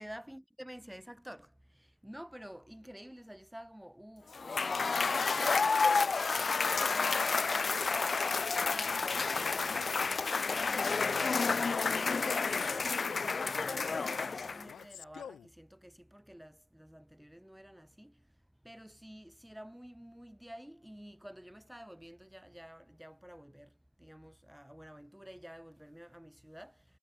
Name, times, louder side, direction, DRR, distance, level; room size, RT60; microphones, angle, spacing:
voice 1, 0.0-10.0 10.4-18.2 18.6-23.7 24.0-26.8, equal, 5° right, 5.0 m, -51 dB
Cheering / Applause / Crowd, 4.3-14.8, left 4 dB, 35° left, 0.5 m, -30 dB
Male speech man speaking, 9.6-10.0 10.7-11.0 11.6-12.0 13.0-13.4 14.7-15.5, left 9 dB, 60° left, 1.7 m, -48 dB
hypercardioid pair, 50°, 0 cm